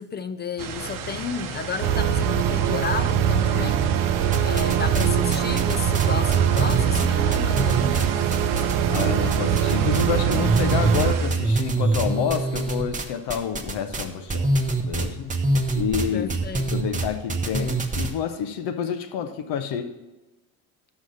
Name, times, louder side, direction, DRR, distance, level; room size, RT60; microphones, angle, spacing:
voice 1, 0.0-3.9 4.4-8.7 16.1-16.7, left 5 dB, 25° left, 0.4 m, -32 dB
sound 1, 0.6-11.6, right 5 dB, 50° right, 0.8 m, -34 dB
sound 2, 1.8-11.1, right 9 dB, 85° right, 0.7 m, -22 dB
sound 3, 4.3-5.1 5.3-9.0 9.3-10.0 10.3-18.1, right 2 dB, 20° right, 0.9 m, -25 dB
voice 2, 8.9-14.5 14.8-15.3 15.7-16.3 16.7-19.9, left 8 dB, 70° left, 0.8 m, -28 dB
6.2 x 5.7 x 6.3 m
supercardioid pair, 75°, 42 cm